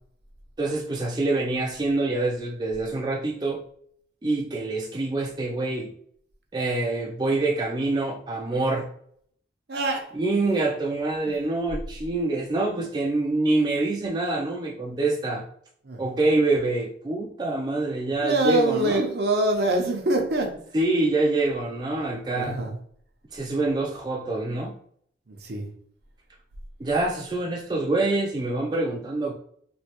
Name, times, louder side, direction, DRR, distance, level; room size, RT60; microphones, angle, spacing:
voice 1, 0.6-3.6 4.2-5.9 6.5-8.9 10.1-15.5 16.0-19.1 20.7-22.6 23.3-24.7 26.8-29.4, right 2 dB, 25° right, -1 dB, 0.3 m, -26 dB
voice 2, 9.7-10.0 11.3-11.4 15.8-16.1 18.2-20.5 22.3-22.7 25.3-25.7, right 2 dB, 65° right, 2 dB, 0.7 m, -25 dB
3.1 x 2.7 x 2.9 m, 0.63 s
head